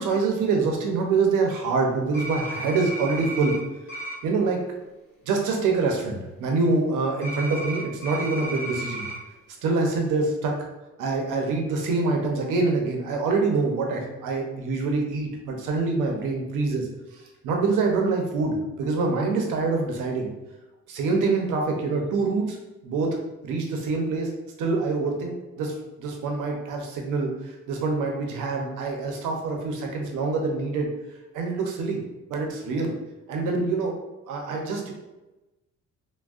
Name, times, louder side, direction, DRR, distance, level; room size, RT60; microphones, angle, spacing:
voice 1, 0.0-3.5 4.2-4.6 5.3-9.0 9.6-10.5 11.0-16.9 17.4-20.3 20.9-22.6 22.8-23.2 23.4-24.3 24.6-27.3 27.7-30.9 31.3-32.0 32.3-32.9 33.3-33.9 34.3-34.9, right 3 dB, 85° right, 1 dB, 0.7 m, -25 dB
sound 1, 2.1-3.6 3.9-4.1 7.2-9.2, right 1 dB, 45° left, 1.5 m, -34 dB
3.5 x 2.2 x 2.4 m, 1.0 s
cardioid pair, 90°, 30 cm